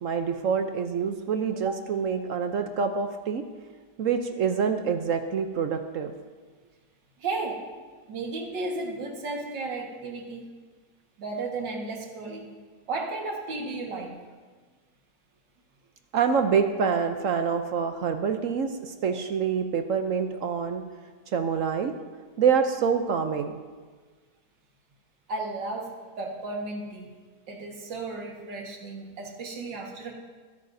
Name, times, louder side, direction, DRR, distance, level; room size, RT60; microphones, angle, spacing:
voice 1, 0.0-3.4 4.0-6.1 16.1-20.8 21.3-21.9 22.4-23.6, right 6 dB, 65° right, 7 dB, 0.8 m, -26 dB
voice 2, 7.2-7.6 8.1-10.5 11.2-12.5 12.9-14.2 25.3-27.1 27.5-30.1, right 3 dB, 85° right, 1 dB, 2.3 m, -34 dB
21.0 x 10.5 x 2.7 m, 1.4 s
omnidirectional pair, 1.9 m